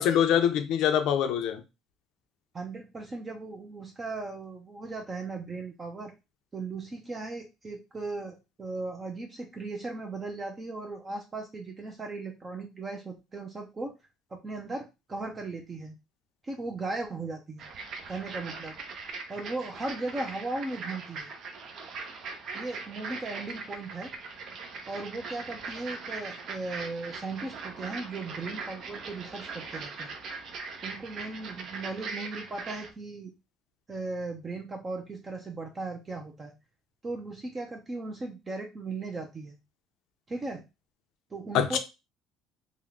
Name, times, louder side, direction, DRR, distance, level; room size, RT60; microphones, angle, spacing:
voice 1, 0.0-1.6 41.5-41.8, left 9 dB, 70° left, 0.6 m, -24 dB
voice 2, 2.5-6.1 6.5-13.9 14.3-15.9 16.4-17.7 18.1-18.7 19.3-21.3 22.5-24.1 24.9-30.1 30.8-33.3 33.9-36.5 37.0-39.6 40.3-40.6 41.3-41.8, right 3 dB, 25° right, 0.6 m, -37 dB
sound 1, 17.6-32.9, right 4 dB, 55° right, 0.7 m, -40 dB
3.6 x 2.2 x 3.6 m
cardioid pair, 125°, 0 cm